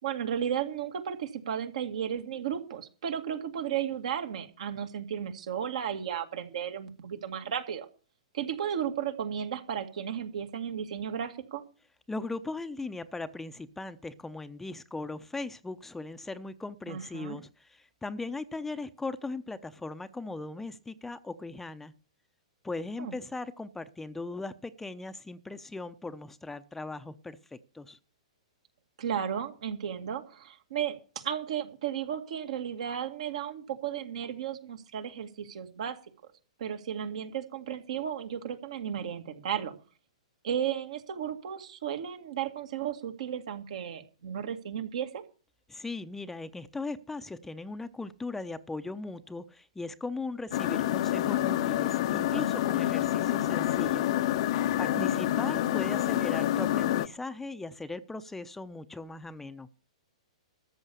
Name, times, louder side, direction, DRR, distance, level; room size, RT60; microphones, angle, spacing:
voice 1, 0.0-7.9 8.3-11.6 16.9-17.4 23.0-23.1 29.0-36.0 36.6-39.7 40.4-45.2 54.9-55.5, right 9 dB, 70° right, 6 dB, 2.1 m, -34 dB
voice 2, 12.1-21.9 22.6-28.0 45.7-54.1 54.8-59.7, left 3 dB, 5° left, 10 dB, 0.7 m, -38 dB
sound 1, 50.5-57.1, left 13 dB, 55° left, 0.7 m, -27 dB
13.5 x 7.2 x 6.8 m, 0.37 s
hypercardioid pair, 125°, 4 cm